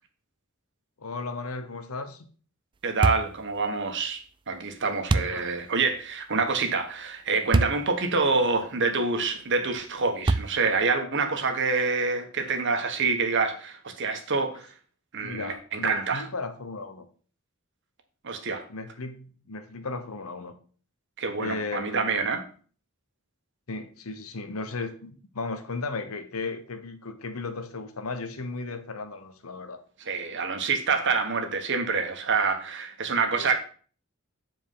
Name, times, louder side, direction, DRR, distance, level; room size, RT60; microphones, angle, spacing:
voice 1, 1.0-2.3 5.1-5.5 15.2-17.1 18.7-20.6 21.4-22.3 23.7-29.8 33.3-33.5, left 3 dB, 90° left, 1.0 m, -35 dB
voice 2, 2.8-14.7 15.1-16.2 18.2-18.6 21.2-22.4 30.1-33.5, right 4 dB, 60° right, 1.3 m, -26 dB
sound 1, 3.0-3.4 5.1-5.4 7.5-7.8 8.4-8.5 10.3-10.7, right 3 dB, 25° right, 0.3 m, -23 dB
7.6 x 4.6 x 5.6 m
head